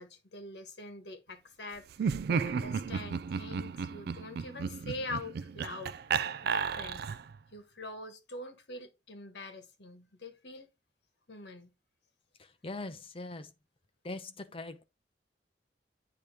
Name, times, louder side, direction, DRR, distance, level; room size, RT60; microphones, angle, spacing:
voice 1, 0.0-6.0 6.5-7.1 7.5-10.7 11.3-11.7, left 2 dB, 70° left, 1.4 m, -44 dB
Laughter, 1.9-7.4, right 6 dB, 65° right, 0.3 m, -33 dB
voice 2, 12.4-13.5 14.0-14.8, left 2 dB, 35° left, 0.7 m, -41 dB
8.6 x 2.9 x 4.8 m
head